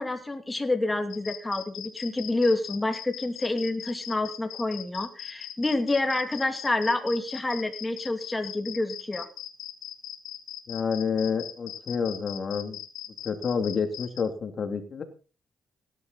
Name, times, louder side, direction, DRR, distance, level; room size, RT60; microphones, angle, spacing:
voice 1, 0.0-9.3, left 2 dB, 15° left, 6 dB, 2.7 m, -28 dB
sound 1, 1.1-14.2, left 12 dB, 85° left, 2.1 m, -40 dB
voice 2, 10.7-12.8 13.2-15.0, left 6 dB, 50° left, 6 dB, 2.9 m, -29 dB
17.0 x 11.5 x 4.1 m, 0.35 s
cardioid pair, 90°, 0 cm